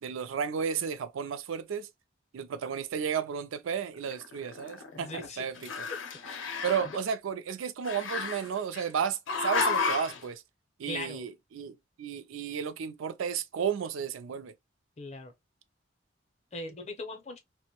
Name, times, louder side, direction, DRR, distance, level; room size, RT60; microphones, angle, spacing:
voice 1, 0.0-1.9 2.3-5.9 6.6-10.4 10.8-14.5, right 7 dB, 85° right, 0.4 m, -33 dB
Growling, 4.0-5.3 5.6-7.0 7.8-8.8 9.3-10.2, left 5 dB, 80° left, 0.5 m, -32 dB
voice 2, 4.9-5.4 6.2-7.0 10.9-11.3 15.0-15.3 16.5-17.4, left 2 dB, 35° left, 0.5 m, -40 dB
2.5 x 2.1 x 2.8 m
head